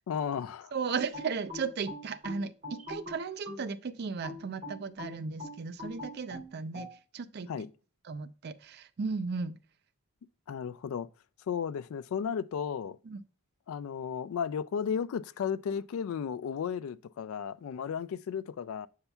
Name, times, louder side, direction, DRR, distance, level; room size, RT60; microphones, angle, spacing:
voice 1, 0.1-0.7 7.5-7.7 10.5-11.1 11.5-13.0 13.7-18.9, left 7 dB, 70° left, 0.3 m, -34 dB
voice 2, 0.7-6.9 7.1-7.5 8.0-9.6 13.1-13.2, right 5 dB, 45° right, 0.4 m, -35 dB
sound 1, 1.1-3.7 4.2-6.9, left 2 dB, 30° right, 3.3 m, -42 dB
7.9 x 5.5 x 2.2 m
head